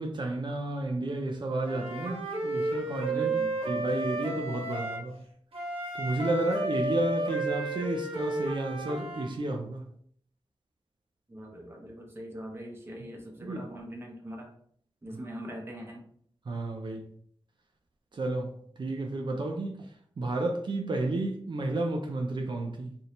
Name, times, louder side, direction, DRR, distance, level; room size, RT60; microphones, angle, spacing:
voice 1, 0.0-5.2 5.9-9.9 13.4-13.7 15.1-15.2 16.5-17.1 18.1-23.0, right 2 dB, 50° right, 0.4 m, -32 dB
Wind instrument woodwind instrument, 1.6-5.0 5.5-9.3, right 2 dB, 65° right, 0.8 m, -32 dB
voice 2, 3.1-3.5 11.3-14.5 15.0-16.0, equal, 20° right, 0.8 m, -42 dB
2.7 x 2.7 x 3.2 m
cardioid pair, 70°, 11 cm